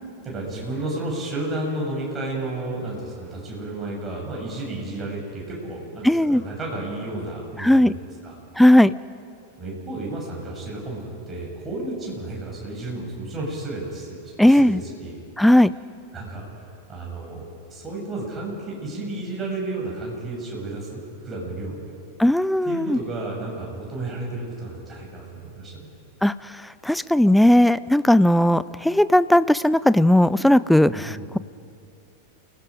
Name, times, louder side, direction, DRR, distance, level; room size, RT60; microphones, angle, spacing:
voice 1, 0.2-8.3 9.6-15.2 16.1-16.6 16.9-17.4 17.7-22.0 22.6-25.9 30.8-31.3, right 2 dB, 20° right, -2 dB, 6.7 m, -32 dB
voice 2, 6.0-6.4 7.6-7.9 8.6-8.9 14.4-14.8 15.4-15.7 22.2-23.0 26.2-31.4, left 1 dB, ahead, 17 dB, 0.4 m, -17 dB
29.0 x 18.0 x 5.1 m, 2.6 s
figure-of-eight pair, 90°, 0 cm